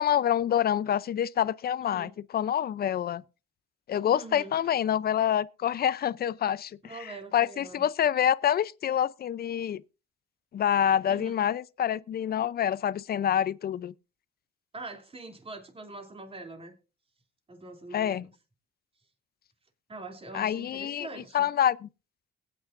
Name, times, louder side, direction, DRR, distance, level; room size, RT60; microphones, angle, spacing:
voice 1, 0.0-3.2 3.9-7.0 7.3-9.8 10.5-13.9 17.9-18.3 20.3-21.1 21.3-21.9, left 10 dB, 50° left, 0.6 m, -27 dB
voice 2, 1.8-2.1 4.1-4.5 6.8-7.8 11.1-11.3 14.7-16.7 17.5-18.3 19.9-21.5, right 2 dB, 30° right, 3.0 m, -43 dB
21.0 x 9.3 x 2.6 m
cardioid pair, 90°, 20 cm